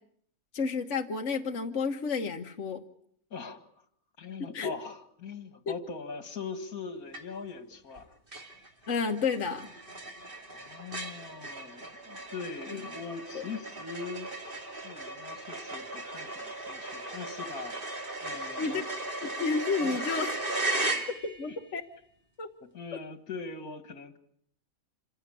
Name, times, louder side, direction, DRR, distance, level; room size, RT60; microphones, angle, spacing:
voice 1, 0.5-2.8 4.4-4.8 5.7-5.8 8.9-9.7 12.7-12.9 13.3-13.5 18.6-18.8 19.2-20.3 21.2-21.8 22.4-22.5, left 5 dB, 55° left, 3 dB, 1.6 m, -31 dB
voice 2, 3.3-3.8 4.2-8.1 10.5-14.3 14.8-18.8 19.8-20.1 22.7-24.2, left 4 dB, 75° left, 10 dB, 2.3 m, -41 dB
sound 1, 7.1-7.6 7.9-8.0 8.3-21.6, right 2 dB, 35° right, 3.0 m, -37 dB
27.0 x 16.5 x 9.9 m, 0.67 s
omnidirectional pair, 1.5 m